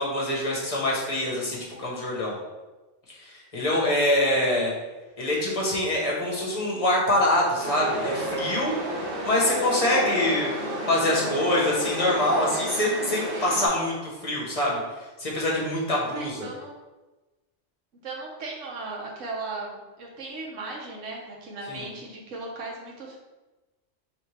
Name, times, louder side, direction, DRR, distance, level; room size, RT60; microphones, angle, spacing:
voice 1, 0.0-2.3 3.1-4.7 5.2-8.8 9.2-10.5 10.9-16.5 21.7-21.8, left 1 dB, 30° left, -4 dB, 1.1 m, -25 dB
Chatter / Subway metro underground, 7.6-13.7, right 1 dB, 55° right, 1.1 m, -31 dB
voice 2, 16.1-16.7 18.0-23.2, right 3 dB, 85° right, -2 dB, 1.2 m, -37 dB
4.3 x 3.2 x 3.3 m, 1.1 s
omnidirectional pair, 1.2 m